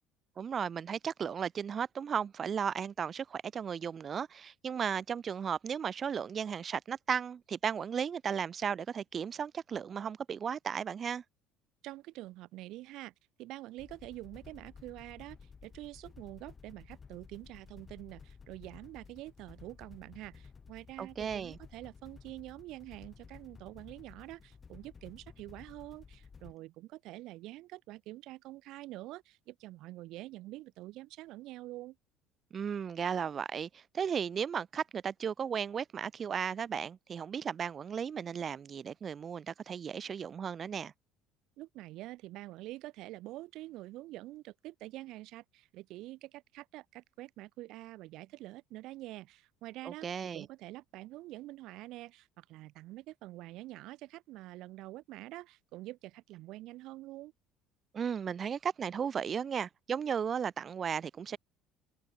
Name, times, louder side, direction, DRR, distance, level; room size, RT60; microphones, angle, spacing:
voice 1, 0.4-11.2 21.0-21.6 32.5-40.9 49.8-50.5 57.9-61.4, right 7 dB, 30° right, 0.4 m, -35 dB
voice 2, 11.8-13.1 13.4-32.0 41.6-57.3, right 17 dB, 65° right, 3.8 m, -46 dB
sound 1, 13.8-26.6, left 5 dB, 25° left, 2.5 m, -54 dB
open air
cardioid pair, 130°, 0 cm